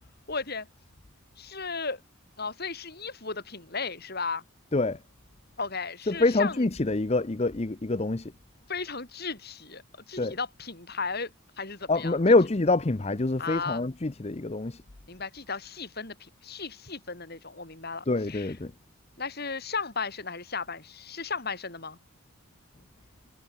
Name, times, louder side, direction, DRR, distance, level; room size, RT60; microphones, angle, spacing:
voice 1, 0.3-0.7 1.4-2.0 2.4-4.4 5.6-6.7 8.7-11.3 11.6-12.2 13.4-13.8 15.1-18.5 19.2-22.0, left 4 dB, 45° left, 4.3 m, -35 dB
voice 2, 6.1-8.3 10.2-10.4 11.9-14.8 18.1-18.7, left 2 dB, 30° left, 0.7 m, -25 dB
head